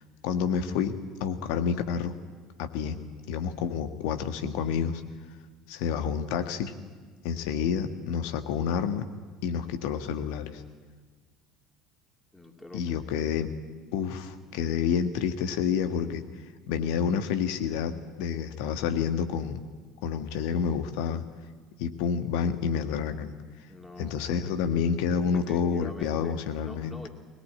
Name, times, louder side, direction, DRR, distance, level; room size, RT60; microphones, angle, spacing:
voice 1, 0.2-2.1 2.6-3.0 3.3-5.0 5.7-6.7 7.2-9.0 9.4-10.6 12.7-13.5 13.9-16.2 16.7-19.6 20.0-21.2 21.8-23.3 24.0-27.0, left 7 dB, 60° left, 8 dB, 1.5 m, -29 dB
voice 2, 12.3-12.8 23.7-24.5 25.3-27.1, left 1 dB, 10° left, 2 dB, 3.0 m, -44 dB
21.5 x 19.0 x 8.8 m, 1.5 s
figure-of-eight pair, 60°, 0 cm